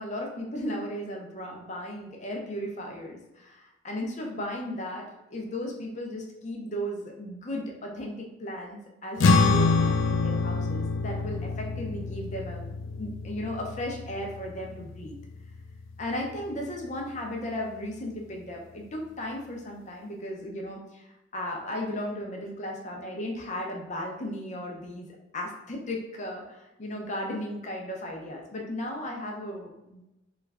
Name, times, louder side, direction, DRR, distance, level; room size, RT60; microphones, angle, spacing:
voice 1, 0.0-5.1 5.3-12.7 13.0-15.1 16.0-25.1 25.3-30.0, left 1 dB, 40° left, 0 dB, 0.6 m, -35 dB
sound 1, 9.2-15.8, left 3 dB, 85° left, 0.3 m, -26 dB
3.2 x 2.4 x 3.3 m, 0.94 s
head